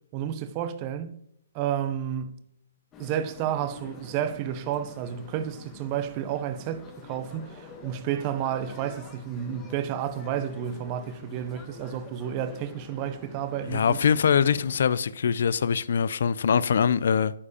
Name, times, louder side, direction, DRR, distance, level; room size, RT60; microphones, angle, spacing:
voice 1, 0.1-1.2 1.5-2.4 3.0-14.0, right 9 dB, 30° right, 0.7 m, -31 dB
sound 1, 2.9-14.7, left 4 dB, 15° left, 1.3 m, -47 dB
voice 2, 13.7-17.3, left 7 dB, 65° left, 0.4 m, -23 dB
8.5 x 5.1 x 5.0 m
hypercardioid pair, 155°, 0 cm